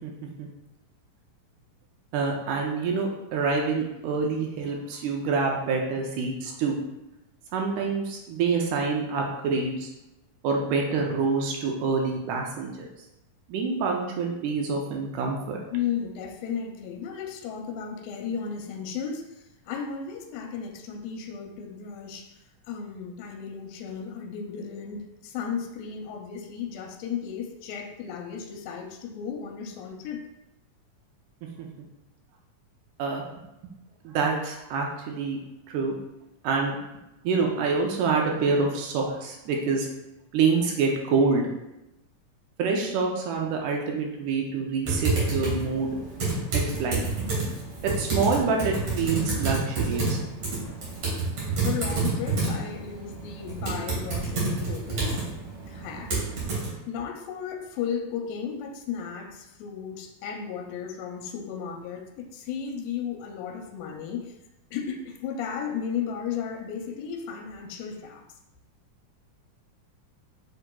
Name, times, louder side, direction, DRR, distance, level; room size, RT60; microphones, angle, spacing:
voice 1, 2.1-6.8 7.5-9.9 10.4-12.9 13.5-15.6 31.6-31.7 33.0-33.7 34.0-35.4 35.7-36.0 36.4-36.8 37.2-39.9 40.3-41.5 42.6-46.0 46.5-47.0 48.0-50.2, right 4 dB, 80° right, 0 dB, 1.9 m, -26 dB
voice 2, 15.7-19.3 19.7-22.3 22.7-30.2 50.4-50.8 51.6-55.3 55.7-56.1 56.9-64.3 64.7-68.2, left 7 dB, 85° left, 2 dB, 2.3 m, -34 dB
Typing, 44.8-56.7, right 3 dB, 55° right, 1.8 m, -29 dB
6.5 x 2.9 x 2.2 m, 0.89 s
omnidirectional pair, 4.0 m